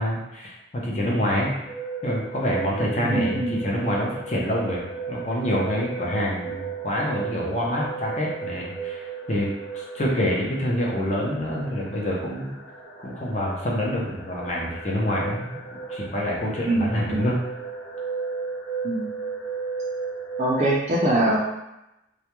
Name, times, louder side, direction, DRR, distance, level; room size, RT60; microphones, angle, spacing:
voice 1, 0.0-1.6 2.0-9.5 9.7-12.5 13.0-17.4, equal, 40° left, -4 dB, 0.5 m, -27 dB
sound 1, 1.7-20.7, right 5 dB, 90° left, 0.5 m, -35 dB
voice 2, 3.0-3.5 16.7-17.3 18.8-19.1 20.4-21.4, right 1 dB, 40° right, -5 dB, 0.4 m, -23 dB
2.3 x 2.1 x 2.9 m, 0.91 s
head